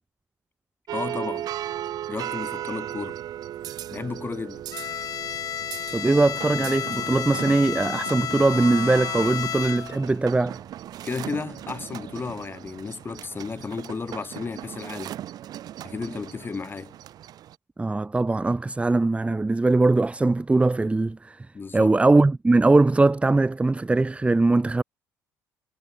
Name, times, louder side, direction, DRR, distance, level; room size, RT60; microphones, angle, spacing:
voice 1, 0.9-1.5 2.1-3.2 3.9-4.7 11.0-15.2 15.8-16.9 21.5-22.0, left 4 dB, 30° left, 2.1 m, -33 dB
sound 1, 0.9-17.5, right 12 dB, 65° right, 3.0 m, -37 dB
Bowed string instrument, 4.7-10.1, left 10 dB, 55° left, 1.8 m, -31 dB
voice 2, 5.9-10.6 17.8-21.5 21.7-24.8, right 2 dB, 15° right, 1.3 m, -21 dB
supercardioid pair, 70°, 7 cm